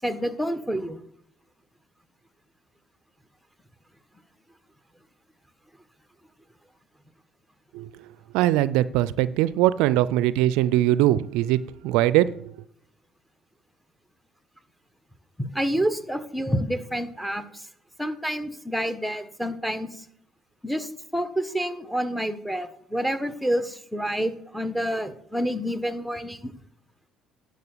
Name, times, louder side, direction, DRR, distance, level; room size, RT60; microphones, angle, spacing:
voice 1, 0.0-1.0 15.4-17.7 18.0-20.0 20.6-26.5, equal, ahead, 1.5 m, -28 dB
voice 2, 8.3-12.4, right 14 dB, 80° right, 0.4 m, -21 dB
10.5 x 6.4 x 6.8 m
supercardioid pair, 65°, 0 cm